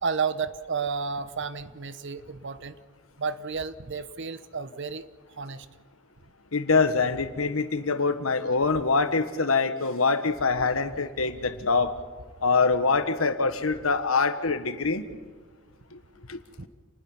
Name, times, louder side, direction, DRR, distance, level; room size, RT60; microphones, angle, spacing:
voice 1, 0.0-2.7 3.2-5.1 5.4-5.7 16.6-16.7, right 5 dB, 60° right, 14 dB, 0.9 m, -31 dB
voice 2, 6.5-11.9 12.4-15.0 15.9-16.0 16.3-16.4, left 4 dB, 85° left, 10 dB, 1.5 m, -24 dB
28.5 x 20.0 x 5.6 m, 1.5 s
head